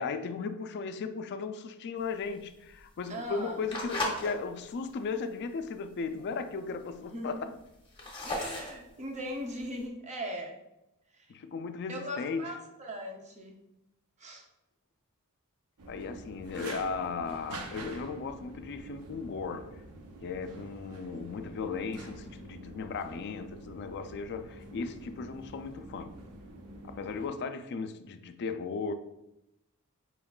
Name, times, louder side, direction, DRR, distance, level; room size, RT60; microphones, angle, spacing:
voice 1, 0.0-7.5 11.3-12.5 15.9-19.7 20.2-26.1 26.8-28.9, left 4 dB, 50° left, 0.3 m, -36 dB
sound 1, 2.0-4.3 4.8-5.1 5.6-5.7 5.9-6.0 6.2-6.8 7.2-9.8, left 1 dB, 25° left, 0.9 m, -36 dB
voice 2, 3.1-3.6 7.0-7.5 8.2-10.6 11.2-11.3 11.9-13.5 14.2-14.5, equal, 30° right, 0.6 m, -39 dB
sound 2, 15.8-27.3, right 2 dB, 90° right, 0.6 m, -47 dB
4.5 x 3.6 x 2.3 m
head